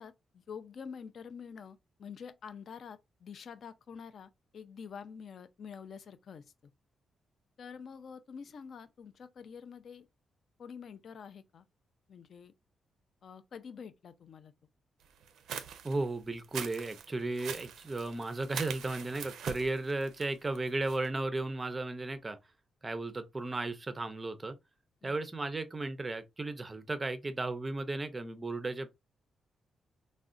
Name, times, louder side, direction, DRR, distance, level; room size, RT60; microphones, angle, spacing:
voice 1, 0.0-6.4 7.6-10.1 10.6-11.7 12.1-12.5 13.2-14.5 25.0-25.2, left 6 dB, 55° left, 0.4 m, -47 dB
sound 1, 15.2-21.1, right 8 dB, 85° right, 0.4 m, -43 dB
voice 2, 15.8-22.4 22.8-24.6 25.0-28.9, right 2 dB, 20° right, 0.4 m, -35 dB
3.5 x 2.1 x 2.4 m
cardioid pair, 135°, 0 cm